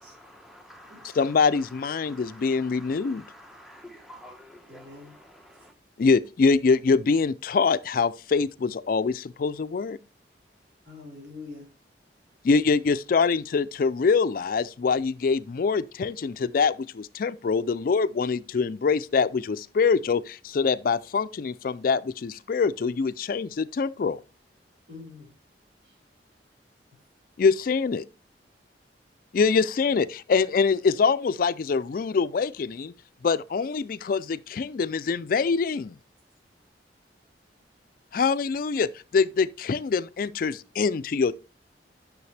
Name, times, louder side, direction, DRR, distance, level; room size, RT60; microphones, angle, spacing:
voice 1, 0.0-5.7, equal, ahead, 1.0 m, -49 dB
voice 2, 1.1-3.2 6.0-10.0 12.4-24.2 27.4-28.0 29.3-32.9 33.2-36.0 38.1-41.3, left 5 dB, 50° left, 0.4 m, -24 dB
voice 3, 4.7-5.1 10.9-11.7 24.9-25.3 25.8-25.9, left 3 dB, 75° right, 4.1 m, -44 dB
9.7 x 6.5 x 3.3 m
head